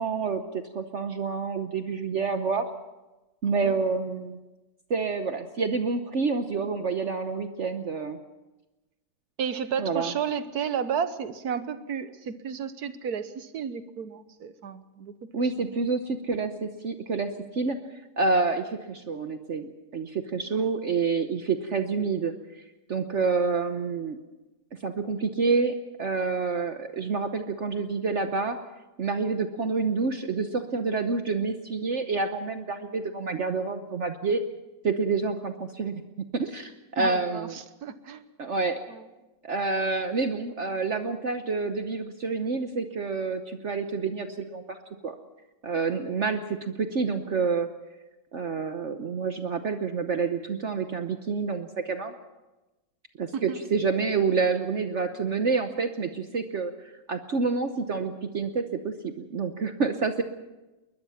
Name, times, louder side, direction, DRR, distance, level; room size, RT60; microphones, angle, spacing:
voice 1, 0.0-2.7 3.4-4.4 4.9-8.2 9.8-10.1 15.3-17.8 18.2-22.6 22.9-24.2 24.8-28.6 29.0-34.4 34.8-37.6 38.4-38.8 39.4-44.8 45.0-45.1 45.6-47.7 48.3-52.1 53.2-60.2, right 4 dB, 50° right, 7 dB, 1.2 m, -28 dB
voice 2, 3.4-3.7 9.4-15.1 20.5-20.7 37.0-38.2 38.9-39.0 53.3-53.6, right 7 dB, 75° right, 12 dB, 1.6 m, -32 dB
21.5 x 21.0 x 5.8 m, 1.1 s
omnidirectional pair, 1.7 m